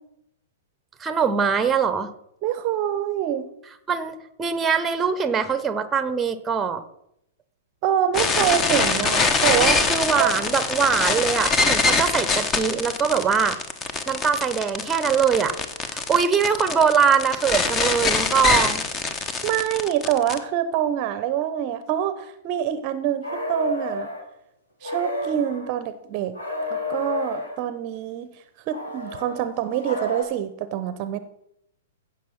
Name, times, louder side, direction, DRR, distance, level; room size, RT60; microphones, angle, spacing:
voice 1, 1.0-2.1 3.9-6.8 9.6-13.6 14.1-15.5 15.9-18.8, right 6 dB, 15° right, 12 dB, 1.0 m, -22 dB
voice 2, 2.4-3.5 7.8-9.9 10.2-10.3 19.4-24.1 24.8-26.3 26.7-28.3 28.7-31.2, right 10 dB, 35° right, 13 dB, 0.8 m, -25 dB
sound 1, 8.1-20.4, left 4 dB, 20° left, 1.2 m, -23 dB
sound 2, 23.2-24.2 24.8-25.7 26.3-27.6 28.7-30.2, left 1 dB, 70° left, 4.6 m, -30 dB
16.0 x 6.1 x 5.9 m, 0.78 s
figure-of-eight pair, 110°, 0 cm